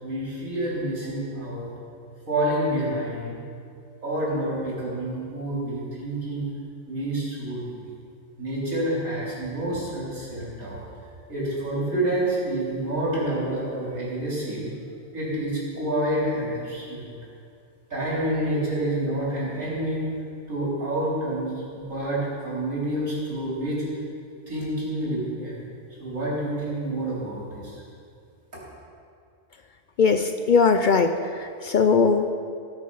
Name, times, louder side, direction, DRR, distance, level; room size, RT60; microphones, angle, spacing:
voice 1, 0.0-1.7 2.3-3.4 4.0-6.5 6.9-7.8 8.4-10.8 11.3-14.7 15.1-17.1 17.9-20.0 20.5-23.8 24.5-25.6 26.0-27.8, right 1 dB, 75° right, -7 dB, 4.2 m, -28 dB
voice 2, 30.0-31.1 31.4-32.3, left 5 dB, 65° left, 7 dB, 0.5 m, -19 dB
17.5 x 6.6 x 5.5 m, 2.4 s
omnidirectional pair, 1.4 m